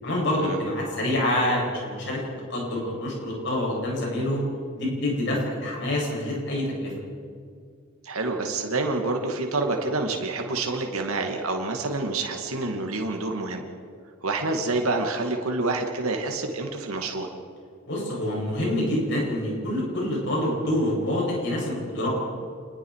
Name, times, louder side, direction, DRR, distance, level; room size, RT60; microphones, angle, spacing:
voice 1, 0.0-2.2 2.5-4.5 4.7-6.9 17.9-22.1, left 1 dB, 55° left, -3 dB, 8.0 m, -26 dB
voice 2, 8.0-13.6 14.2-17.3, right 3 dB, 85° right, 2 dB, 2.3 m, -27 dB
27.5 x 20.5 x 4.9 m, 2.2 s
head